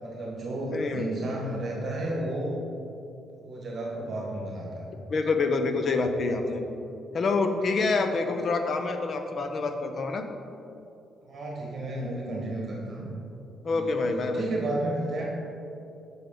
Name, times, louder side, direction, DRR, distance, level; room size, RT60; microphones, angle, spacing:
voice 1, 0.0-2.6 3.4-4.9 11.3-13.1 13.7-15.3, right 1 dB, 40° right, -3 dB, 1.4 m, -32 dB
voice 2, 0.7-1.1 5.1-6.6 7.1-10.2 13.6-14.4, left 3 dB, 40° left, 6 dB, 0.6 m, -27 dB
8.6 x 6.1 x 3.8 m, 2.8 s
cardioid pair, 145°, 0 cm